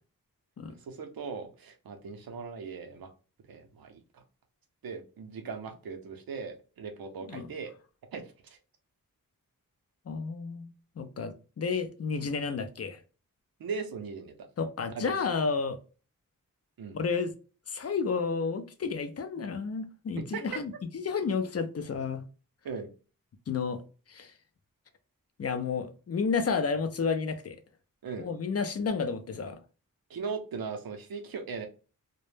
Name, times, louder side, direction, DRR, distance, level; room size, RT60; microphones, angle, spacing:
voice 1, 0.9-3.1 3.5-4.2 4.8-7.7 8.1-8.6 13.6-14.4 15.0-15.1 16.8-17.0 20.2-20.6 22.6-22.9 28.0-28.3 30.1-31.7, right 5 dB, 80° right, 0.6 m, -38 dB
voice 2, 10.1-13.0 14.6-15.8 16.9-17.3 17.7-22.2 23.5-23.8 24.1-24.3 25.4-27.6 28.2-29.6, left 5 dB, 45° left, 0.4 m, -31 dB
2.1 x 2.0 x 3.1 m
wide cardioid pair, 65°, 35 cm